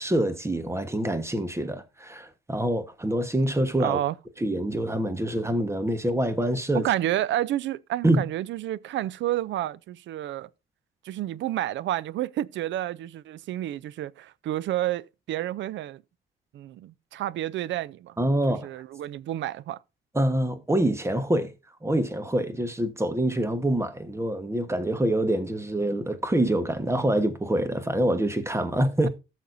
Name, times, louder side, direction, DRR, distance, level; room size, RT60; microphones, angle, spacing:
voice 1, 0.0-4.0 4.4-6.8 8.0-8.2 18.2-18.7 20.1-21.5 21.8-29.1, right 1 dB, 15° right, 1.3 m, -25 dB
voice 2, 3.8-4.2 6.7-10.5 11.0-16.0 16.5-18.1 18.6-19.8, right 13 dB, 70° right, 0.5 m, -30 dB
15.0 x 6.4 x 2.6 m
cardioid pair, 90°, 20 cm